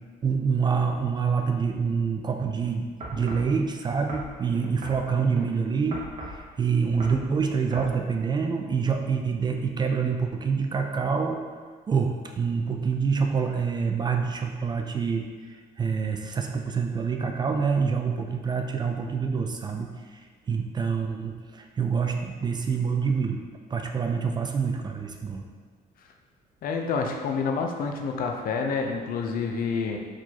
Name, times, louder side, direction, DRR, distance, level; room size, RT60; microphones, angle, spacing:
voice 1, 0.2-11.4 11.9-23.4 23.7-25.5, right 5 dB, 25° right, 4 dB, 0.4 m, -26 dB
sound 1, 3.0-3.5 4.1-5.4 5.9-6.4 6.9-7.2 7.7-7.9 8.6-8.7, right 1 dB, 40° right, 0.9 m, -38 dB
voice 2, 26.6-30.0, left 5 dB, 60° left, 3 dB, 0.6 m, -28 dB
4.8 x 3.9 x 2.9 m, 1.5 s
cardioid pair, 110°, 17 cm